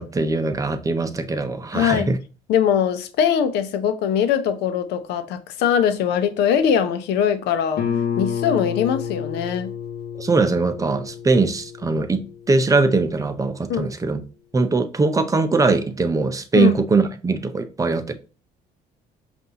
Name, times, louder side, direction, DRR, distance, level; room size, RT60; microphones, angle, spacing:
voice 1, 0.0-2.2 10.2-14.2 14.5-18.1, right 3 dB, 20° right, 0.6 m, -21 dB
voice 2, 1.7-2.1 2.5-7.8 8.2-9.7 13.7-13.9 16.5-16.7, left 8 dB, 85° left, 0.7 m, -21 dB
Guitar, 7.8-13.2, left 8 dB, 65° left, 1.2 m, -30 dB
5.3 x 2.6 x 2.8 m
cardioid pair, 110°, 17 cm